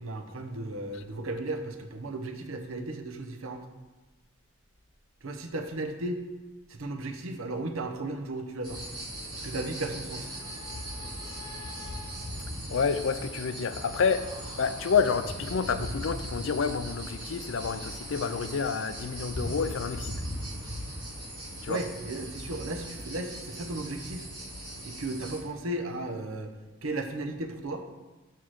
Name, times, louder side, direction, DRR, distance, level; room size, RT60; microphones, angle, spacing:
voice 1, 0.0-3.6 5.2-6.2 6.7-8.8 9.4-10.3 21.7-24.3 24.8-26.5 26.8-27.8, right 2 dB, 90° right, 5 dB, 0.9 m, -35 dB
sound 1, 8.6-25.4, equal, 20° right, 2.6 m, -39 dB
voice 2, 12.7-14.3 14.6-20.1 21.6-21.8, left 5 dB, 70° left, 12 dB, 0.4 m, -29 dB
5.8 x 4.7 x 6.4 m, 1.1 s
head